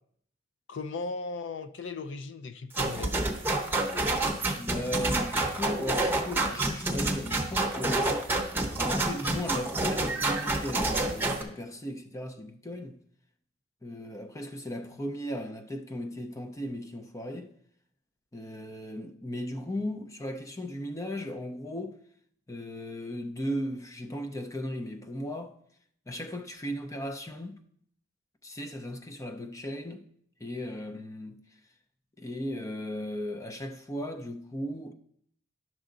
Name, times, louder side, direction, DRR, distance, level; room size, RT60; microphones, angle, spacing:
voice 1, 0.7-3.4, left 3 dB, 70° left, 0.5 m, -37 dB
sound 1, 2.7-11.4, right 2 dB, 10° right, 0.8 m, -28 dB
voice 2, 4.5-8.1 8.8-13.0 13.8-17.5 18.3-22.0 22.5-25.5 26.1-27.6 28.4-30.1 30.4-31.4 32.2-34.9, equal, 15° left, 0.6 m, -36 dB
11.0 x 6.1 x 3.9 m
head